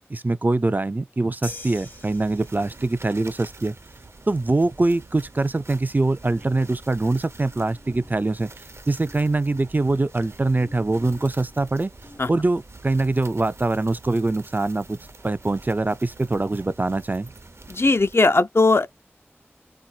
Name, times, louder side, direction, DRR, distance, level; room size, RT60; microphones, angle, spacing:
voice 1, 0.0-3.8 4.3-8.5 8.9-11.9 12.3-15.0 15.2-17.3, right 2 dB, 40° right, 0.4 m, -23 dB
sound 1, 1.4-3.0, left 2 dB, 45° left, 0.8 m, -41 dB
sound 2, 1.4-18.2, right 3 dB, 85° right, 0.6 m, -46 dB
sound 3, 6.2-12.8, left 1 dB, 80° left, 2.2 m, -50 dB
voice 2, 17.7-18.9, left 3 dB, 65° left, 0.5 m, -18 dB
4.4 x 2.2 x 2.3 m
wide cardioid pair, 55°, 5 cm